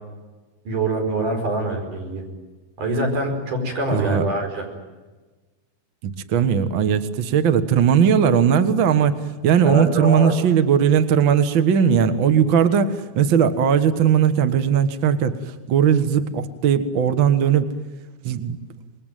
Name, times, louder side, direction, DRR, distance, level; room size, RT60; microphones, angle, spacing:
voice 1, 0.6-2.2 2.8-4.7 9.6-10.3, right 2 dB, 50° right, 2 dB, 6.5 m, -24 dB
voice 2, 3.9-4.3 6.0-9.1 9.4-15.4 15.7-17.7 18.2-18.6, right 8 dB, 80° right, 10 dB, 1.1 m, -18 dB
27.0 x 21.5 x 9.1 m, 1.2 s
omnidirectional pair, 4.5 m